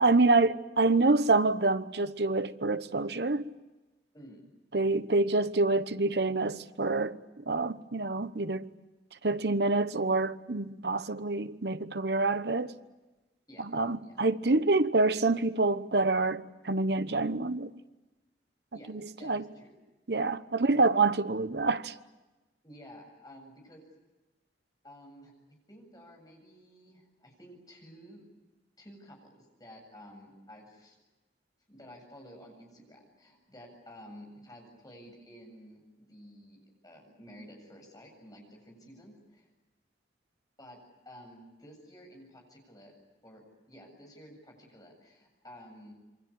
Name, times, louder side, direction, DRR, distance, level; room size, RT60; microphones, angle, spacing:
voice 1, 0.0-3.5 4.7-7.2 7.5-8.7 9.2-12.7 13.6-17.7 18.9-19.4 20.1-21.9, right 3 dB, 65° right, 1.1 m, -27 dB
voice 2, 4.1-4.5 13.5-13.6 14.0-14.2 18.7-18.9 19.2-19.8 20.7-20.9 22.6-23.8 24.8-28.2 28.8-31.0 31.7-39.5 40.6-40.8 41.0-43.0 43.2-45.9, equal, 20° left, 7.7 m, -52 dB
28.0 x 24.0 x 8.7 m
head